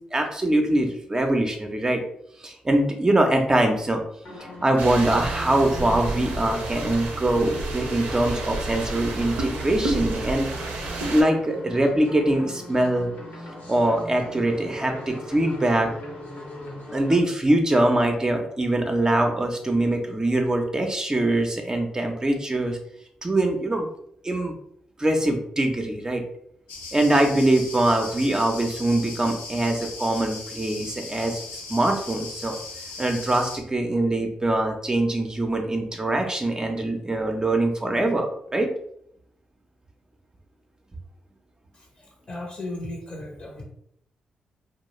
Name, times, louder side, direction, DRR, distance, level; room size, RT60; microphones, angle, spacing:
voice 1, 0.1-2.0 2.4-4.0 4.6-10.5 11.1-13.1 13.7-15.9 16.9-22.8 23.2-23.9 24.2-24.5 25.0-26.2 26.9-31.4 31.7-32.6 33.0-38.7, right 1 dB, 25° right, 3 dB, 0.5 m, -23 dB
sound 1, 4.2-17.2, left 1 dB, 70° left, 0.8 m, -39 dB
sound 2, 4.8-11.2, right 2 dB, 75° right, 0.5 m, -31 dB
sound 3, 26.7-33.6, left 3 dB, 90° left, 0.4 m, -38 dB
voice 2, 42.3-43.6, left 2 dB, 35° left, 0 dB, 0.6 m, -35 dB
2.3 x 2.0 x 3.0 m, 0.70 s
supercardioid pair, 50°, 3 cm